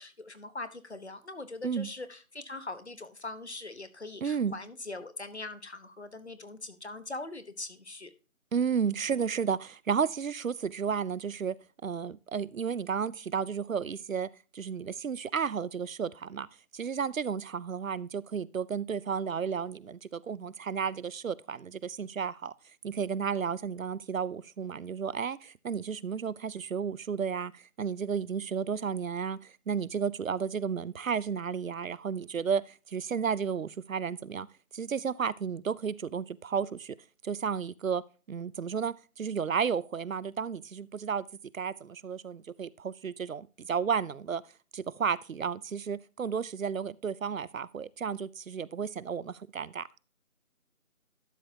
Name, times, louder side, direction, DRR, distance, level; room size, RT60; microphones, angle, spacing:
voice 1, 0.0-8.1, left 2 dB, 50° left, 1.1 m, -42 dB
voice 2, 4.2-4.6 8.5-11.5 11.8-16.5 16.7-22.5 22.8-34.5 34.7-37.0 37.2-38.0 38.3-41.2 41.5-44.4 44.7-49.9, right 6 dB, 70° right, 0.5 m, -32 dB
11.5 x 6.7 x 2.7 m
figure-of-eight pair, 175°, 41 cm